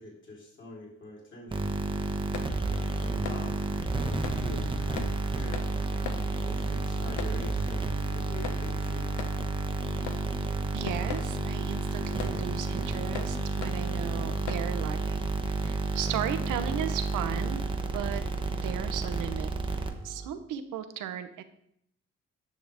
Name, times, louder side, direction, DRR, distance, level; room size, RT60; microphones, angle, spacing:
voice 1, 0.0-1.8 2.6-5.6 6.4-9.1, left 2 dB, 40° left, -4 dB, 3.4 m, -45 dB
sound 1, 1.5-20.3, right 3 dB, 15° right, 0.8 m, -31 dB
sound 2, 1.9-15.0, left 7 dB, 80° left, 0.9 m, -44 dB
sound 3, 2.4-9.4, left 3 dB, 60° left, 1.4 m, -51 dB
voice 2, 10.7-15.2 15.6-17.6 17.9-18.2 18.5-19.5 20.0-21.4, right 10 dB, 85° right, 9 dB, 0.9 m, -36 dB
9.5 x 6.4 x 3.4 m, 0.72 s
cardioid pair, 90°, 30 cm